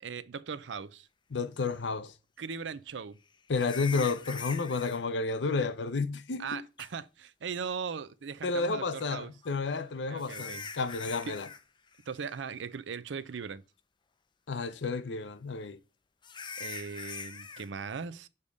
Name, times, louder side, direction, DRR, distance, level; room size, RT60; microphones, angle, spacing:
voice 1, 0.0-1.1 2.4-3.2 6.4-9.3 10.1-10.7 11.3-11.4 12.1-13.6 16.6-18.3, right 6 dB, 90° right, 0.5 m, -39 dB
voice 2, 1.3-2.1 3.5-6.6 8.4-11.5 14.5-15.8, left 4 dB, 75° left, 0.6 m, -31 dB
sound 1, 1.7-1.8 3.5-5.0 6.8-6.9 9.4-11.6 11.9-12.2 12.6-12.7 13.3-13.4 16.2-17.7, left 5 dB, 25° left, 0.5 m, -42 dB
6.6 x 3.5 x 5.2 m
head